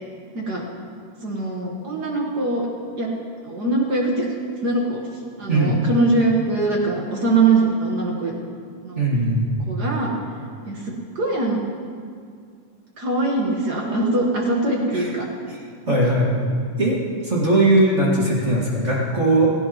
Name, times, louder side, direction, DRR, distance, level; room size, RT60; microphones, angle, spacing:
voice 1, 1.2-2.7 3.0-3.1 3.4-4.3 4.6-5.0 5.4-8.3 8.8-9.0 9.7-10.1 10.7-11.6 13.0-15.3 15.9-16.1, right 2 dB, 50° right, -1 dB, 1.2 m, -22 dB
voice 2, 9.0-9.5 14.9-15.1 15.5-15.6 15.9-16.5 16.8-19.5, right 1 dB, 25° right, -5 dB, 1.8 m, -19 dB
16.0 x 16.0 x 3.1 m, 2.2 s
omnidirectional pair, 3.6 m